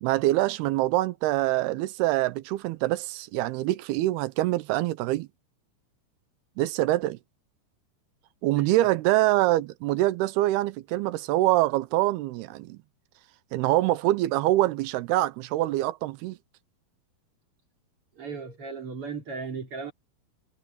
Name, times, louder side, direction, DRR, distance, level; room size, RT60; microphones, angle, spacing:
voice 1, 0.0-5.3 6.6-7.2 8.4-12.8 13.5-16.4, right 16 dB, 85° right, 2.7 m, -25 dB
voice 2, 8.5-8.9 18.2-19.9, right 5 dB, 35° right, 3.8 m, -36 dB
omnidirectional pair, 4.6 m